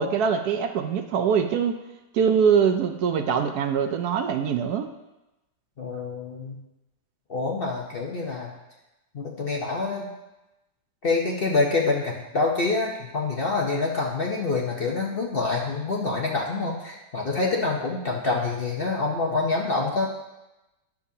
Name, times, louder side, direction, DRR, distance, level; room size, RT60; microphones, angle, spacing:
voice 1, 0.0-1.8 2.1-4.9, right 7 dB, 70° right, 7 dB, 1.0 m, -23 dB
voice 2, 5.8-6.6 7.3-8.5 9.1-10.1 11.0-20.1, left 3 dB, 50° left, -2 dB, 0.7 m, -26 dB
10.5 x 7.1 x 2.7 m, 0.99 s
omnidirectional pair, 1.8 m